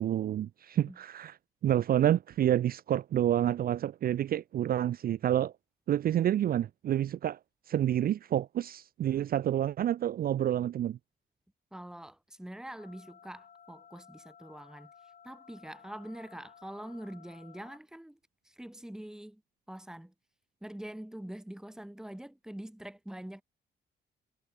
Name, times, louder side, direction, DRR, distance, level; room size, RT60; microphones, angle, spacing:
voice 1, 0.0-1.3 1.6-5.5 5.9-7.4 7.7-11.0, right 11 dB, 55° right, 0.4 m, -28 dB
voice 2, 11.7-14.9 15.2-18.2 18.4-19.4 19.7-20.1 20.6-23.4, right 1 dB, 5° right, 1.0 m, -44 dB
sound 1, 12.8-17.8, left 7 dB, 45° left, 2.0 m, -56 dB
cardioid pair, 105°, 19 cm